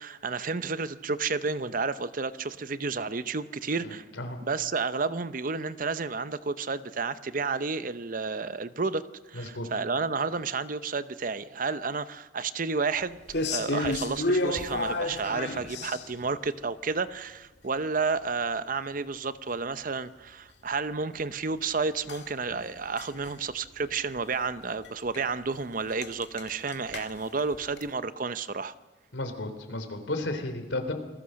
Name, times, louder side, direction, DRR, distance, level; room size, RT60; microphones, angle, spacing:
voice 1, 0.0-4.0 4.4-13.2 13.5-28.7, right 4 dB, 45° right, 14 dB, 0.7 m, -31 dB
voice 2, 3.8-4.4 9.3-9.7 29.1-30.9, left 2 dB, 85° left, 8 dB, 3.4 m, -33 dB
sound 1, 13.3-16.3 22.1-23.3 23.6-23.9 24.2-24.3 24.8-24.9 25.1-25.2 25.5-25.6 25.9-27.9, left 2 dB, 60° left, 2.1 m, -31 dB
28.5 x 20.0 x 6.4 m, 1.2 s
head